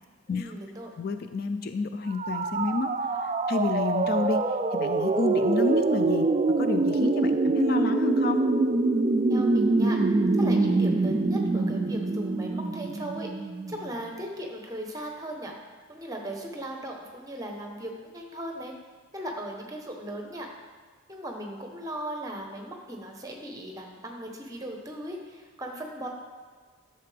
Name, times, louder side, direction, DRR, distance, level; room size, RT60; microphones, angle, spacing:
voice 1, 0.3-0.9 9.3-13.3 13.7-15.5 15.9-18.7 19.1-20.5 21.1-26.1, right 1 dB, 15° right, 1 dB, 0.9 m, -38 dB
voice 2, 1.0-4.4 4.7-6.3 6.6-8.4, left 3 dB, 45° left, 8 dB, 0.4 m, -29 dB
sound 1, 2.1-13.9, right 3 dB, 30° right, 0.3 m, -25 dB
11.0 x 6.7 x 3.4 m, 1.5 s
head